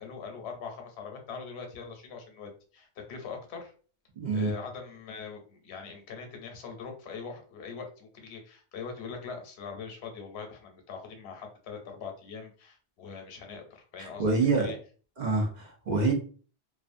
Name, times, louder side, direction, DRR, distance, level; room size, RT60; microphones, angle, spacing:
voice 1, 0.0-3.7 4.3-14.3 14.6-14.8, left 5 dB, 75° left, 4 dB, 0.9 m, -42 dB
voice 2, 4.2-4.5 14.0-14.7 15.2-16.1, right 3 dB, 50° right, 0 dB, 0.6 m, -26 dB
2.4 x 2.3 x 2.5 m, 0.40 s
omnidirectional pair, 1.1 m